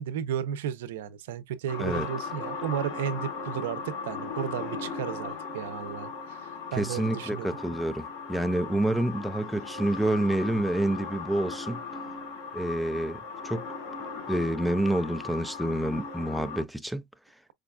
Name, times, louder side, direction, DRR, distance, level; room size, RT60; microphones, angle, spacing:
voice 1, 0.0-7.5, right 9 dB, 90° right, 0.6 m, -34 dB
sound 1, 1.7-16.6, left 5 dB, 60° left, 2.1 m, -38 dB
voice 2, 6.8-11.8 12.5-13.7 14.3-17.0, right 1 dB, ahead, 0.4 m, -28 dB
5.0 x 2.3 x 2.3 m
supercardioid pair, 140°, 0 cm